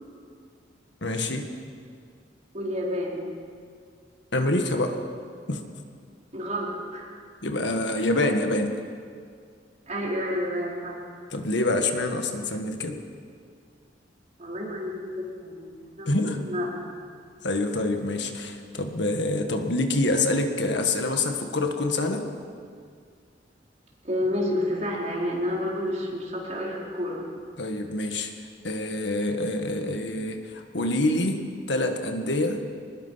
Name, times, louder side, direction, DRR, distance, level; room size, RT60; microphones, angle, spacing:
voice 1, 1.0-1.5 4.3-5.0 5.5-5.6 7.4-8.8 11.3-13.0 16.1-16.5 17.4-22.3 27.6-28.3 28.6-32.6, left 2 dB, 70° left, 5 dB, 1.7 m, -26 dB
voice 2, 2.5-3.3 6.3-7.1 9.9-11.0 14.4-16.1 16.4-16.7 24.0-27.2, left 1 dB, 40° right, -3 dB, 4.5 m, -30 dB
24.0 x 20.5 x 5.8 m, 2.2 s
head